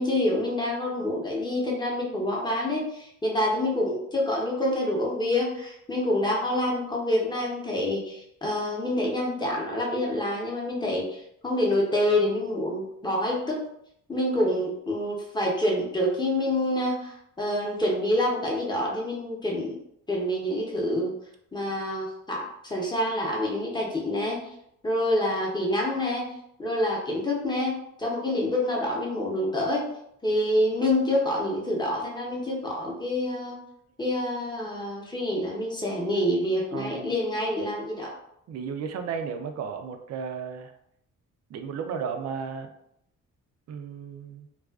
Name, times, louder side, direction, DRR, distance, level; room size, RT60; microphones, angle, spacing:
voice 1, 0.0-13.6 14.1-19.8 20.1-21.1 21.5-24.4 24.8-26.3 26.6-29.9 30.2-33.6 34.0-38.1, left 1 dB, 15° left, -3 dB, 0.7 m, -27 dB
voice 2, 36.7-37.1 38.5-40.7 41.5-42.7 43.7-44.5, right 6 dB, 55° right, 6 dB, 0.4 m, -34 dB
2.4 x 2.3 x 2.3 m, 0.75 s
cardioid pair, 90°, 30 cm